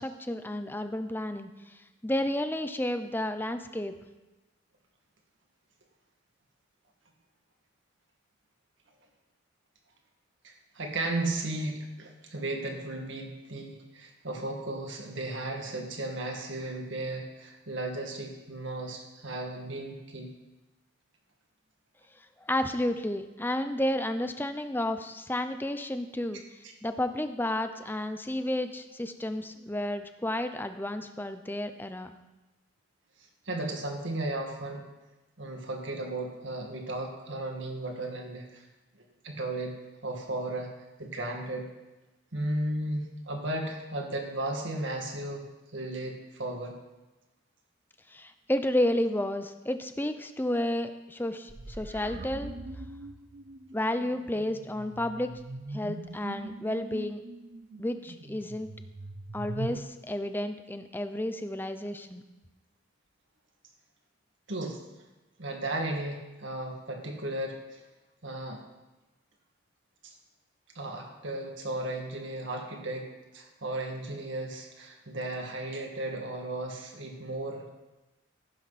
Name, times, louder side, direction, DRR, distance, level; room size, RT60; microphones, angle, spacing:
voice 1, 0.0-1.8 2.0-3.9 22.4-26.4 26.8-32.1 48.1-52.5 53.7-55.3 55.7-57.2 57.8-58.7 59.3-62.2, left 1 dB, 10° left, 9 dB, 0.6 m, -31 dB
voice 2, 10.4-20.3 33.4-34.8 35.4-38.6 39.2-39.8 40.0-40.7 41.0-41.7 42.3-45.5 45.7-46.8 64.5-64.8 65.4-67.8 68.2-68.6 70.0-70.1 70.7-77.7, right 2 dB, 65° right, 1 dB, 2.1 m, -35 dB
sound 1, 51.5-59.8, right 2 dB, 45° right, 0.7 m, -42 dB
15.0 x 11.5 x 4.2 m, 1.1 s
head